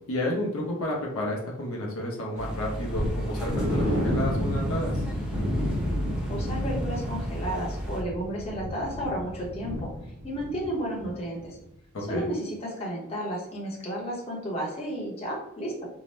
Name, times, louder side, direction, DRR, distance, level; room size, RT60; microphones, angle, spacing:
voice 1, 0.1-5.0 11.9-12.3, left 1 dB, 70° left, -2 dB, 0.7 m, -31 dB
sound 1, 2.4-8.0, equal, 5° right, 0.4 m, -34 dB
sound 2, 2.9-10.7 11.0-11.1 11.6-11.7, equal, 70° right, 1.0 m, -30 dB
voice 2, 6.3-9.9 10.2-11.6 12.1-15.9, equal, 30° left, -4 dB, 0.8 m, -32 dB
2.7 x 2.0 x 3.1 m, 0.78 s
head